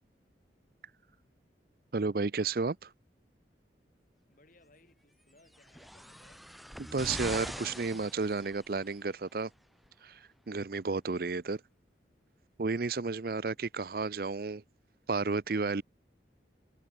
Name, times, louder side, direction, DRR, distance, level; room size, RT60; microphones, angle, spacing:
voice 1, 1.9-2.9 6.9-9.5 10.0-11.6 12.6-14.6 15.1-15.8, right 4 dB, 55° right, 0.6 m, -32 dB
voice 2, 4.3-6.5 13.1-13.5, left 2 dB, 45° left, 7.0 m, -64 dB
sound 1, 5.5-8.9 9.8-9.9, equal, ahead, 1.7 m, -42 dB
head